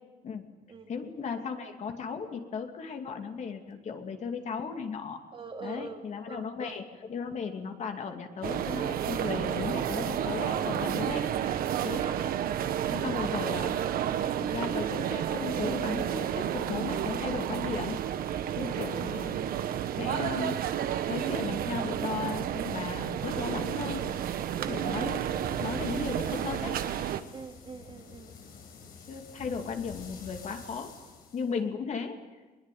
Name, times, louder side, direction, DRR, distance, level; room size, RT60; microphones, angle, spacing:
voice 1, 0.9-5.2 5.6-11.3 11.8-12.1 12.9-13.7 14.4-18.0 18.6-19.4 19.9-20.6 21.1-24.1 24.7-25.3 25.6-26.8 29.1-30.9 31.3-32.2, left 5 dB, 50° left, 4 dB, 2.7 m, -36 dB
voice 2, 5.3-6.0 6.3-6.7 9.1-9.2 12.0-12.2 14.5-14.7 18.5-19.2 24.6-24.7 27.3-28.5, right 4 dB, 35° right, 4 dB, 2.6 m, -44 dB
sound 1, 8.4-27.2, right 10 dB, 70° right, 1.3 m, -31 dB
sound 2, 23.2-31.6, left 5 dB, 70° left, 6.9 m, -49 dB
22.0 x 21.5 x 9.4 m, 1.3 s
cardioid pair, 135°, 16 cm